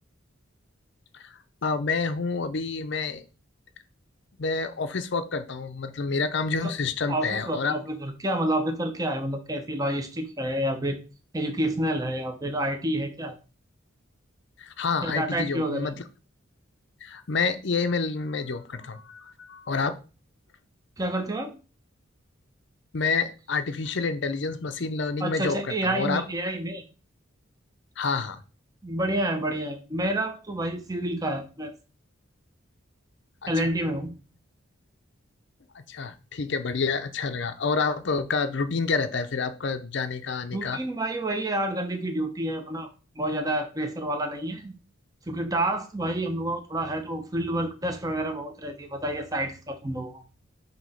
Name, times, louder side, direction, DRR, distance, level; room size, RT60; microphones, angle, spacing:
voice 1, 1.1-3.2 4.4-7.7 14.6-15.9 17.0-19.9 22.9-26.2 28.0-28.4 33.4-33.7 35.7-40.8, left 4 dB, 55° left, 9 dB, 0.6 m, -28 dB
voice 2, 7.1-11.0 11.3-13.3 15.0-16.0 21.0-21.5 25.2-26.8 28.8-31.7 33.5-34.2 40.5-42.9 43.2-44.7 45.3-50.2, right 1 dB, 15° right, 6 dB, 0.7 m, -29 dB
6.0 x 2.9 x 5.7 m, 0.33 s
head